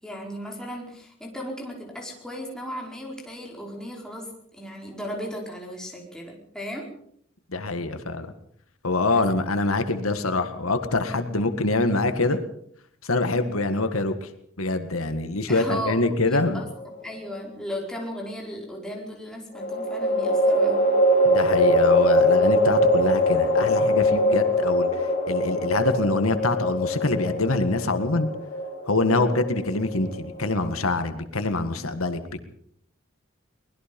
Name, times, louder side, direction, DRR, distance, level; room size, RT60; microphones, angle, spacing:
voice 1, 0.0-6.9 9.1-9.2 15.5-16.6 17.0-20.9, equal, 5° left, -1 dB, 4.9 m, -36 dB
voice 2, 7.5-8.3 8.8-12.4 13.0-14.3 14.6-16.7 21.2-28.3 28.9-32.2, left 2 dB, 90° left, 8 dB, 1.9 m, -25 dB
sound 1, 16.5-17.3 19.5-30.9, left 1 dB, 35° left, 5.9 m, -22 dB
24.0 x 20.0 x 5.4 m, 0.67 s
head